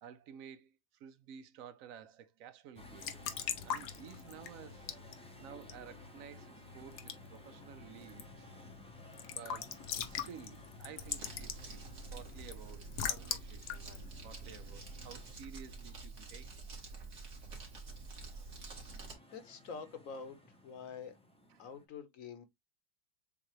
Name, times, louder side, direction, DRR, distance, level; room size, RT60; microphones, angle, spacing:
voice 1, 0.0-3.2 3.6-4.9 5.4-8.5 9.2-16.5 17.0-17.1 21.6-21.7, right 8 dB, 70° right, 0.8 m, -53 dB
Raindrop / Drip / Trickle dribble, 2.8-15.2, left 8 dB, 80° left, 1.3 m, -43 dB
sound 1, 2.8-21.9, left 1 dB, 5° left, 0.5 m, -58 dB
Crumpling crinkling, 11.0-19.1, right 4 dB, 50° right, 1.9 m, -48 dB
voice 2, 19.0-20.4 20.6-21.2 21.6-22.4, left 5 dB, 60° left, 1.2 m, -46 dB
7.1 x 2.4 x 3.1 m
omnidirectional pair, 1.7 m